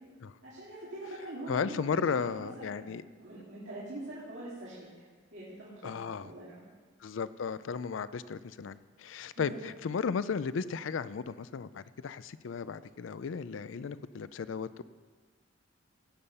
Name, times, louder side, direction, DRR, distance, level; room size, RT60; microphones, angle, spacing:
voice 1, 0.4-4.9 5.3-6.6 9.3-9.6, right 1 dB, 65° right, -9 dB, 3.1 m, -44 dB
voice 2, 1.5-3.0 5.8-6.3 7.0-14.8, left 6 dB, 75° left, 15 dB, 0.4 m, -35 dB
17.0 x 7.2 x 5.6 m, 1.5 s
head